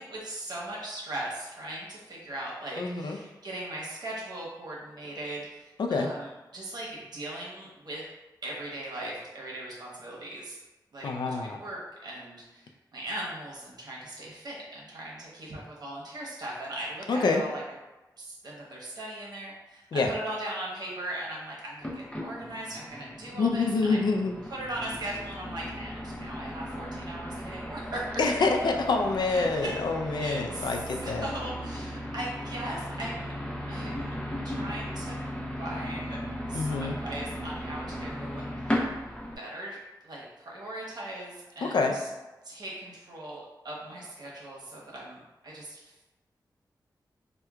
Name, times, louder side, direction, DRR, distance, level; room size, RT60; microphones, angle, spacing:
voice 1, 0.0-8.0 8.4-10.6 10.9-17.6 18.2-24.0 24.5-28.2 29.2-29.7 30.2-33.3 33.7-34.2 34.4-35.2 35.6-36.2 36.5-38.9 39.4-39.8 40.0-42.1 42.4-45.9, right 1 dB, 65° right, -4 dB, 0.9 m, -39 dB
voice 2, 2.8-3.2 5.8-6.1 11.0-11.6 17.1-17.4 19.9-20.1 23.3-24.3 28.2-31.3 36.5-37.0 41.6-42.0, left 3 dB, 75° left, 3 dB, 0.4 m, -26 dB
sound 1, 21.8-39.4, equal, 15° left, 0.6 m, -36 dB
4.4 x 2.2 x 2.3 m, 1.1 s
wide cardioid pair, 125°, 7 cm